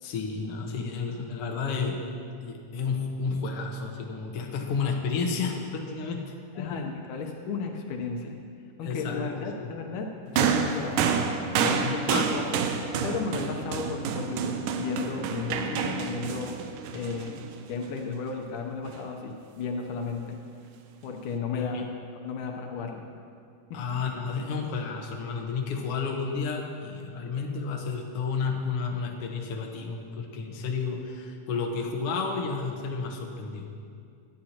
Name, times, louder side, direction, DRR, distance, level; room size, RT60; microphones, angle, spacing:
voice 1, 0.0-2.0 2.4-6.8 8.8-9.7 11.8-12.3 21.5-21.9 23.7-33.7, left 5 dB, 60° left, 1 dB, 1.7 m, -31 dB
voice 2, 6.6-8.4 8.8-11.0 11.6-12.4 13.0-16.6 16.9-17.4 17.7-20.4 21.0-21.9 22.2-23.0 23.7-23.8 27.2-27.3, left 5 dB, 75° left, 2 dB, 2.3 m, -34 dB
sound 1, 10.4-17.9 18.9-19.0, right 6 dB, 90° right, 2.3 m, -29 dB
17.5 x 11.5 x 2.9 m, 2.4 s
omnidirectional pair, 3.7 m